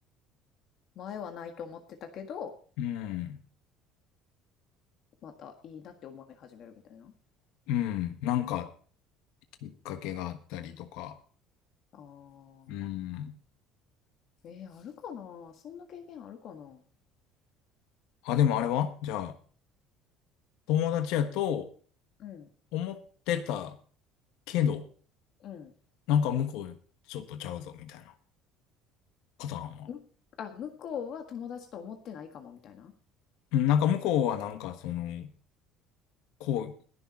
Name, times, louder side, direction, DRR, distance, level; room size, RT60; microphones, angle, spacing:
voice 1, 0.9-2.5 5.2-7.1 11.9-12.9 14.4-16.8 22.2-22.5 25.4-25.7 29.9-30.0 30.4-32.9, left 7 dB, 45° left, 5 dB, 1.6 m, -42 dB
voice 2, 2.8-3.4 7.7-8.7 9.6-11.2 12.7-13.3 18.2-19.3 20.7-21.7 22.7-23.0 23.3-23.8 24.5-24.8 26.1-26.7 27.1-28.1 29.4-29.9 33.5-35.3 36.4-36.7, left 10 dB, 75° left, 8 dB, 1.4 m, -29 dB
21.0 x 7.0 x 4.2 m, 0.43 s
cardioid pair, 155°, 0 cm